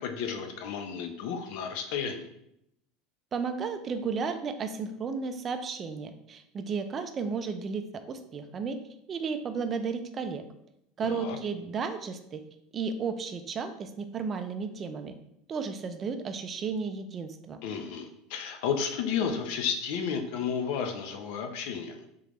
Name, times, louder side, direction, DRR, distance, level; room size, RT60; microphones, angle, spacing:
voice 1, 0.0-2.3 11.0-11.4 17.6-22.1, left 6 dB, 65° left, 6 dB, 0.6 m, -32 dB
voice 2, 3.3-8.8 9.1-10.4 11.0-12.4 12.7-15.1 15.5-17.6, right 5 dB, 25° right, 9 dB, 0.4 m, -33 dB
3.7 x 3.3 x 3.0 m, 0.78 s
supercardioid pair, 140°, 0 cm